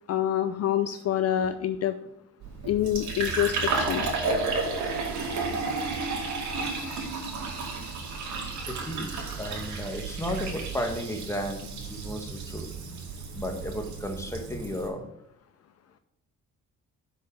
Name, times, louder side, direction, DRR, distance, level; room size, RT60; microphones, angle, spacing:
voice 1, 0.1-1.9 2.6-4.1, left 11 dB, 55° left, 10 dB, 0.5 m, -26 dB
Fill (with liquid), 2.4-14.9, right 4 dB, 70° right, 2.2 m, -32 dB
voice 2, 8.7-12.7 13.3-15.1, equal, 10° left, 4 dB, 1.5 m, -34 dB
6.0 x 5.9 x 6.4 m, 0.79 s
cardioid pair, 90°, 30 cm